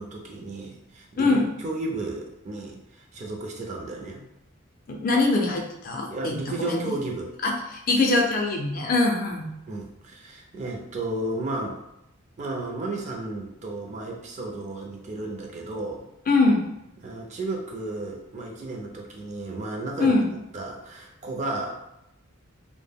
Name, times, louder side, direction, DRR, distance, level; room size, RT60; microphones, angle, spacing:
voice 1, 0.0-4.2 6.1-7.3 9.7-11.8 12.4-16.1 17.0-20.1 20.5-21.7, right 2 dB, 35° right, 0 dB, 0.4 m, -33 dB
voice 2, 4.9-6.9 7.4-9.5 16.3-16.7 20.0-20.3, left 3 dB, 40° left, 1 dB, 0.4 m, -23 dB
2.2 x 2.1 x 3.4 m, 0.83 s
head